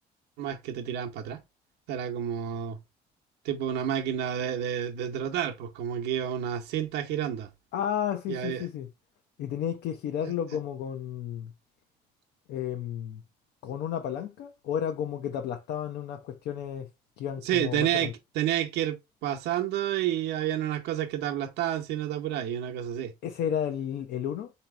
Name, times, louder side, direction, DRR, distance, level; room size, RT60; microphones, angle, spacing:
voice 1, 0.4-1.4 1.9-2.8 3.4-7.5 8.3-8.7 10.2-10.3 17.4-23.1, right 10 dB, 90° right, 0.8 m, -30 dB
voice 2, 7.7-8.9 9.4-11.5 12.5-13.2 13.6-16.9 17.2-18.1 23.2-24.5, left 9 dB, 80° left, 0.6 m, -32 dB
4.0 x 2.9 x 4.6 m
cardioid pair, 110°, 17 cm